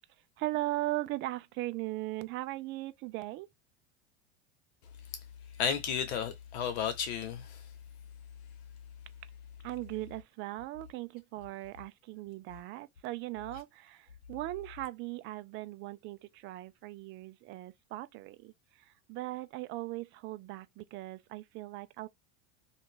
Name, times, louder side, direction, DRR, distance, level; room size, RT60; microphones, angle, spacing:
voice 1, 0.4-3.5 6.2-6.3 9.6-22.1, right 18 dB, 40° right, 0.4 m, -39 dB
voice 2, 5.6-7.6, left 7 dB, 85° left, 1.1 m, -33 dB
2.9 x 2.4 x 3.6 m
supercardioid pair, 135°, 32 cm